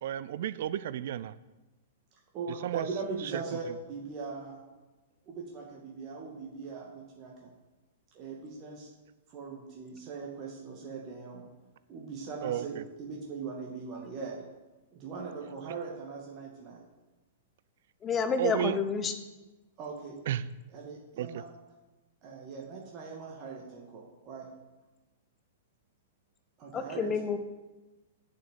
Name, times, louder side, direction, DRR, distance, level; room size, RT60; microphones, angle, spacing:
voice 1, 0.0-1.3 2.6-2.9 3.3-3.4 12.4-12.8 18.4-18.8 20.3-20.4 21.2-21.3, right 11 dB, 55° right, 16 dB, 0.5 m, -32 dB
voice 2, 2.3-4.6 5.3-7.5 8.1-8.9 9.3-11.4 11.9-14.4 14.9-16.8 19.8-20.2 20.7-21.4 22.2-24.5 26.6-27.1, right 4 dB, 35° right, -2 dB, 2.1 m, -40 dB
voice 3, 18.0-19.1 26.7-27.4, left 6 dB, 20° left, 8 dB, 1.1 m, -29 dB
8.1 x 6.6 x 7.5 m, 1.1 s
figure-of-eight pair, 105°, 0 cm